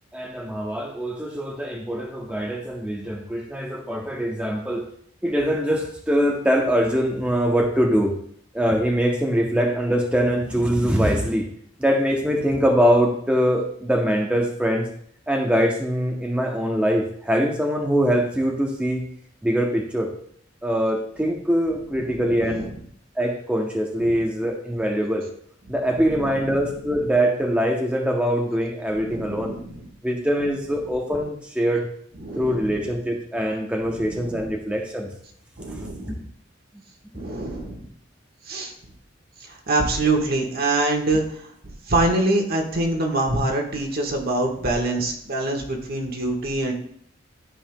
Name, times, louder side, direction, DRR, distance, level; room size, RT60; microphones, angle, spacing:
voice 1, 0.1-4.8 5.2-8.2 8.5-11.5 11.8-14.9 15.3-19.1 19.4-20.1 20.6-22.7 23.2-25.3 25.7-29.6 30.0-31.9 32.4-35.1 35.7-36.1, equal, 5° right, 0 dB, 0.7 m, -23 dB
voice 2, 29.0-29.8 32.2-32.8 33.9-34.5 35.6-36.2 37.1-37.8 38.5-38.7 39.5-41.5 41.9-46.7, right 2 dB, 55° right, 2 dB, 1.3 m, -25 dB
12.5 x 5.5 x 2.2 m, 0.66 s
head